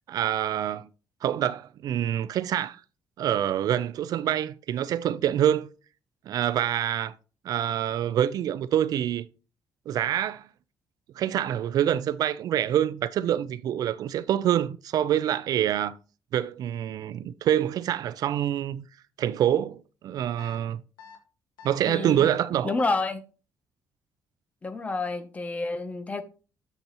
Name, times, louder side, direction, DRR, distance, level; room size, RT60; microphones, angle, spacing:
voice 1, 0.1-0.9 1.2-2.8 3.2-5.7 6.3-7.1 7.4-9.2 9.9-10.5 11.2-15.9 16.3-18.8 19.2-19.8 20.0-20.8 21.6-22.7, right 10 dB, 55° right, 0.4 m, -26 dB
sound 1, 20.4-20.6 21.0-21.2 21.6-21.8 22.2-22.4 22.8-23.0, left 6 dB, 70° left, 1.6 m, -47 dB
voice 2, 21.8-22.3 22.6-23.2 24.6-26.2, left 3 dB, 20° left, 0.7 m, -29 dB
8.1 x 6.8 x 2.9 m
cardioid pair, 155°, 8 cm